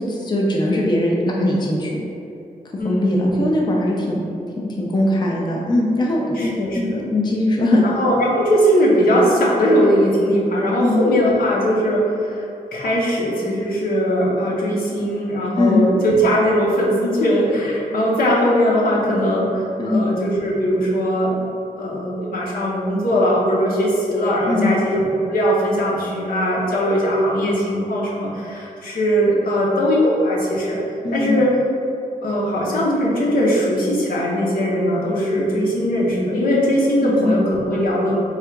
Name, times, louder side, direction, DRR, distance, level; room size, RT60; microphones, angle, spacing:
voice 1, 0.1-2.0 2.8-4.3 4.6-7.8 10.8-11.0 15.6-15.8 19.8-20.0 24.5-24.8 31.0-31.4 37.0-37.4, left 1 dB, 30° left, -3 dB, 0.5 m, -20 dB
voice 2, 2.8-3.4 6.3-7.0 7.8-12.4 12.7-21.5 21.8-30.8 31.1-31.5 32.2-38.2, equal, 75° left, -5 dB, 0.9 m, -19 dB
3.6 x 2.4 x 4.5 m, 2.7 s
wide cardioid pair, 105°, 15 cm